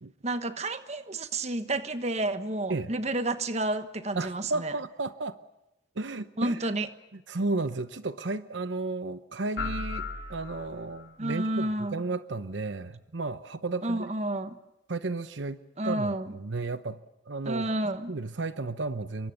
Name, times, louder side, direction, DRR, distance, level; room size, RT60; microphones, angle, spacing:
voice 1, 0.2-4.7 6.4-6.9 11.2-12.0 13.8-14.6 15.8-16.3 17.4-18.1, right 2 dB, 35° right, 1.3 m, -30 dB
voice 2, 4.2-5.4 6.0-6.7 7.1-14.1 14.9-15.6 15.8-17.0 17.3-17.7 18.1-19.3, right 3 dB, 80° right, 0.9 m, -33 dB
sound 1, 9.6-11.1, left 4 dB, 70° left, 2.6 m, -36 dB
27.0 x 23.5 x 6.7 m
head